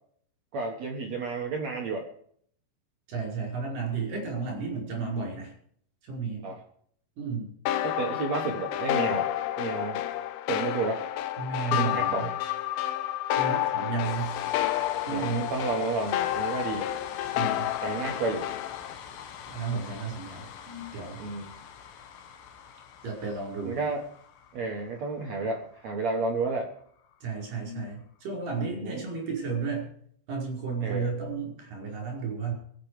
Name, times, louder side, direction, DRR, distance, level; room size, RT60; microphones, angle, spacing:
voice 1, 0.5-2.1 6.4-6.6 7.8-9.3 9.6-10.0 10.5-11.0 11.7-12.3 15.1-16.9 17.8-18.5 21.2-21.5 23.6-24.0 24.5-26.7 28.6-29.1 30.8-31.1, right 3 dB, 65° right, 1 dB, 1.8 m, -31 dB
voice 2, 3.1-5.5 6.0-6.5 7.2-7.5 11.4-12.3 13.4-14.4 15.1-15.5 17.2-17.7 19.5-21.2 23.0-23.8 27.2-29.9 30.3-32.5, right 5 dB, 50° right, -1 dB, 6.6 m, -33 dB
sound 1, 7.7-18.9, left 13 dB, 90° left, 2.1 m, -30 dB
sound 2, 14.0-28.1, left 7 dB, 65° left, 2.6 m, -45 dB
24.0 x 8.7 x 4.9 m, 0.62 s
omnidirectional pair, 5.3 m